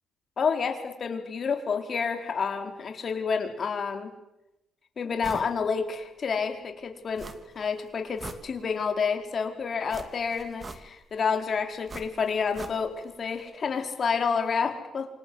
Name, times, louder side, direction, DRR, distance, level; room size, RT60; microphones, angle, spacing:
voice 1, 0.4-4.1 5.0-7.3 7.5-15.1, left 5 dB, 45° left, 5 dB, 4.4 m, -29 dB
sound 1, 5.2-5.5 5.9-6.0 7.2-7.7 8.0-9.0 9.9-11.2 11.9-13.1 13.4-13.5, right 3 dB, 30° right, 2.7 m, -43 dB
27.5 x 26.0 x 7.9 m, 0.92 s
cardioid pair, 90°, 0 cm